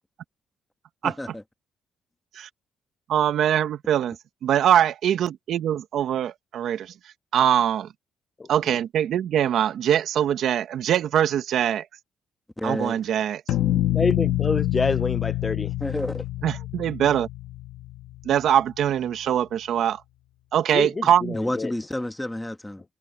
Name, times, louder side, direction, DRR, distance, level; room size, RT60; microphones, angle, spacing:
voice 1, 1.0-1.4 12.6-13.0 15.8-16.2 21.3-22.8, left 1 dB, 10° left, 1.9 m, -30 dB
voice 2, 3.1-4.2 4.4-6.9 7.3-7.9 8.5-11.9 12.6-13.4 16.4-17.3 18.3-20.0 20.5-21.4, right 10 dB, 75° right, 1.6 m, -22 dB
sound 1, 13.5-18.4, left 14 dB, 80° left, 1.4 m, -26 dB
voice 3, 13.9-15.7 20.7-21.7, left 3 dB, 25° left, 0.5 m, -27 dB
cardioid pair, 90°, 0 cm